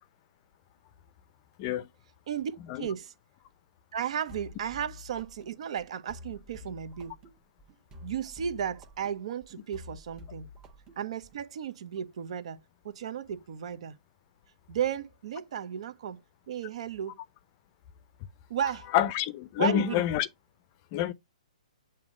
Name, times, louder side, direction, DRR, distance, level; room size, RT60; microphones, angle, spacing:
voice 1, 2.3-3.1 3.9-7.2 8.0-10.5 11.0-12.6 12.8-13.9 14.7-16.2 16.5-17.2 18.5-18.9 19.6-20.0, right 8 dB, 55° right, 0.9 m, -34 dB
sound 1, 4.3-11.5, left 3 dB, 20° right, 1.3 m, -49 dB
voice 2, 18.9-20.3 20.9-21.1, left 11 dB, 35° left, 0.5 m, -27 dB
7.0 x 2.8 x 4.8 m
hypercardioid pair, 145°, 4 cm